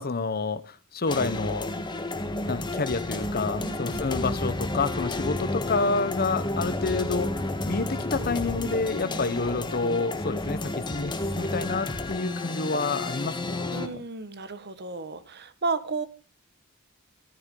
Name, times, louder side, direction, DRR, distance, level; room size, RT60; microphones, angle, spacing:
voice 1, 0.0-1.9 2.5-7.3 7.7-14.0, left 3 dB, 45° left, 14 dB, 1.0 m, -29 dB
sound 1, 1.1-13.9, left 2 dB, 20° left, 1.5 m, -31 dB
voice 2, 3.6-4.0 9.0-9.2 13.7-16.1, right 3 dB, 50° right, 12 dB, 1.4 m, -33 dB
14.0 x 14.0 x 3.8 m, 0.33 s
head